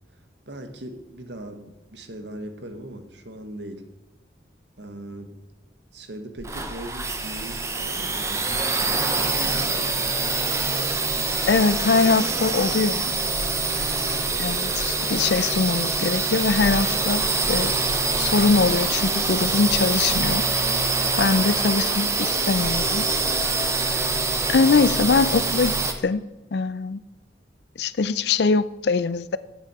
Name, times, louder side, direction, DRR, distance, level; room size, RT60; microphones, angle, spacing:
voice 1, 0.5-3.8 4.8-5.4 5.9-10.1 20.7-21.0, right 1 dB, 80° right, 1.4 m, -40 dB
sound 1, 6.4-25.9, right 3 dB, 15° right, 0.8 m, -25 dB
voice 2, 11.5-13.1 14.4-17.7 18.2-20.4 21.2-23.0 24.5-25.7 26.0-26.2 26.5-27.0 27.8-29.4, left 4 dB, 70° left, 0.4 m, -22 dB
9.1 x 8.1 x 4.8 m
head